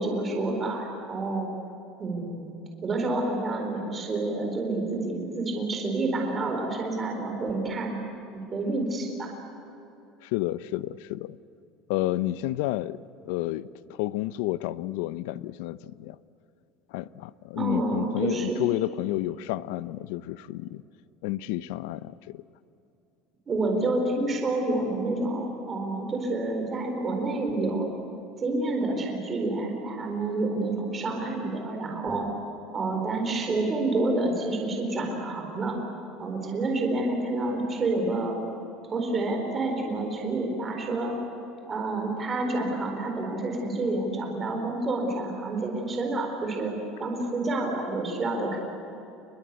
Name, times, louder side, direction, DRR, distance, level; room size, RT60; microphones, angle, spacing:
voice 1, 0.0-1.5 2.0-2.5 2.8-8.0 8.3-9.3 17.5-18.6 23.5-27.9 28.4-32.4 32.7-35.8 36.2-38.4 38.9-41.1 41.6-46.7 47.0-48.6, right 2 dB, 20° right, 2 dB, 4.2 m, -28 dB
voice 2, 10.2-11.4 11.9-13.0 13.2-16.2 16.9-20.8 21.2-22.4, left 16 dB, 75° left, 16 dB, 0.7 m, -30 dB
29.5 x 21.5 x 8.3 m, 2.8 s
cardioid pair, 170°, 0 cm